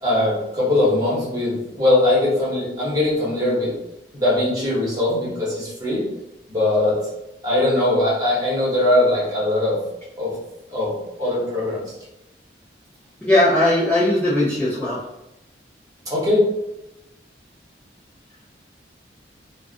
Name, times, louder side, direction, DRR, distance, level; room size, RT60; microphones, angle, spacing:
voice 1, 0.0-3.7 4.1-6.0 6.5-7.0 7.4-9.8 10.2-10.3 10.7-11.8 16.1-16.5, left 1 dB, 20° right, -8 dB, 1.0 m, -20 dB
voice 2, 13.2-15.0, left 1 dB, 10° left, -10 dB, 0.4 m, -18 dB
2.4 x 2.3 x 2.4 m, 0.92 s
head